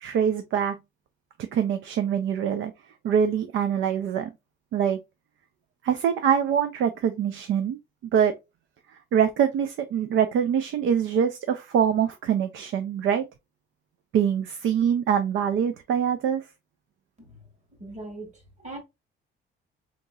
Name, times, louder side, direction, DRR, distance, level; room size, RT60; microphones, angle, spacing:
voice 1, 0.0-0.8 1.5-2.7 3.0-4.3 4.7-5.0 5.8-7.8 8.1-8.3 9.1-13.2 14.1-16.5, right 8 dB, 70° right, 0.4 m, -24 dB
voice 2, 17.2-17.5 17.8-18.8, right 2 dB, 35° right, 1.5 m, -41 dB
3.8 x 2.9 x 2.2 m
cardioid pair, 140°, 21 cm